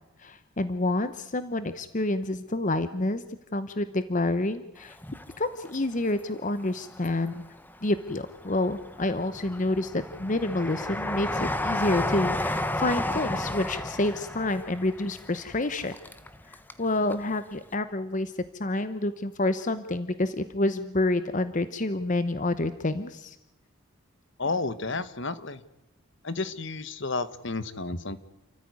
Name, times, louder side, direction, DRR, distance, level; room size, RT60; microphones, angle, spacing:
voice 1, 0.2-3.2 3.5-5.0 5.4-7.4 7.8-15.9 16.5-18.3 18.6-23.4, left 2 dB, 35° left, 12 dB, 0.9 m, -28 dB
Train, 4.9-6.1 6.6-7.6 8.1-16.8 17.1-17.2, left 1 dB, 10° left, 1.1 m, -32 dB
voice 2, 24.4-25.6 26.2-28.2, left 3 dB, 55° left, 14 dB, 1.2 m, -31 dB
29.0 x 14.5 x 9.5 m, 0.93 s
head